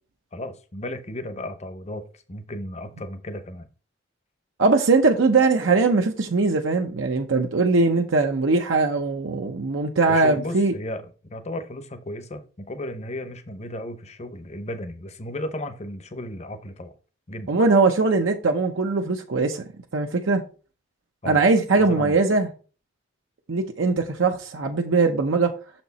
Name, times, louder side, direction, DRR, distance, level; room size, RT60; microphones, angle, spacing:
voice 1, 0.3-3.7 10.0-16.9 17.3-17.5 21.2-21.4 21.8-22.2, left 1 dB, 35° left, 0.8 m, -34 dB
voice 2, 4.6-10.7 17.5-19.6 19.9-20.4 21.2-22.5 23.5-25.5, right 3 dB, 75° right, 0.7 m, -21 dB
6.4 x 4.4 x 4.0 m
head